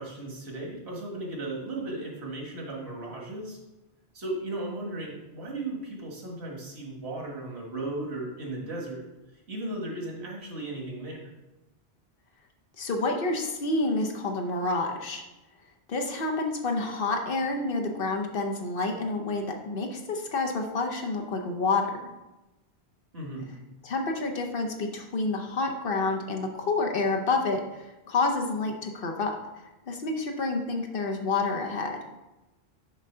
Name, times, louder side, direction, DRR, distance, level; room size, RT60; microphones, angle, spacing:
voice 1, 0.0-3.6 4.1-9.1 9.5-11.2 23.1-23.6, right 2 dB, 75° right, -1 dB, 1.7 m, -36 dB
voice 2, 12.8-15.2 15.9-21.9 23.8-29.3 29.9-32.0, left 3 dB, 60° left, 2 dB, 1.0 m, -28 dB
6.2 x 3.7 x 5.5 m, 1.0 s
omnidirectional pair, 1.1 m